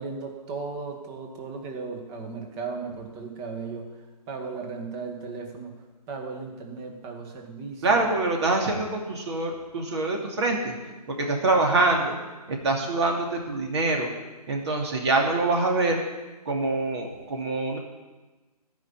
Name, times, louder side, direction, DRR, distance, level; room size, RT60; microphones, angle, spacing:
voice 1, 0.0-8.0, right 4 dB, 20° right, 2 dB, 1.8 m, -36 dB
voice 2, 7.8-10.7 11.1-12.2 12.5-14.1 14.5-16.0 16.5-17.8, right 3 dB, 40° right, 1 dB, 2.8 m, -25 dB
16.5 x 5.7 x 9.0 m, 1.2 s
figure-of-eight pair, 145°, 21 cm